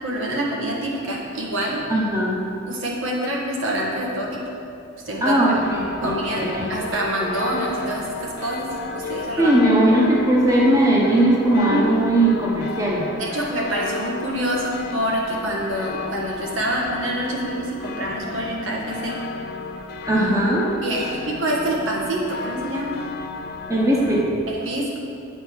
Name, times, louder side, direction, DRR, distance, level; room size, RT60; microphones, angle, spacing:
voice 1, 0.0-1.8 2.7-4.5 5.0-5.6 6.0-9.5 11.7-11.8 13.2-19.2 20.8-23.0 24.5-25.0, right 1 dB, 80° right, -3 dB, 1.4 m, -26 dB
voice 2, 1.9-2.4 5.2-6.7 9.0-13.1 20.1-20.7 21.0-21.2 23.7-24.3, right 1 dB, 15° right, -4 dB, 0.9 m, -19 dB
sound 1, 5.6-24.2, left 4 dB, 50° left, 0.5 m, -33 dB
8.4 x 4.4 x 5.9 m, 2.7 s
head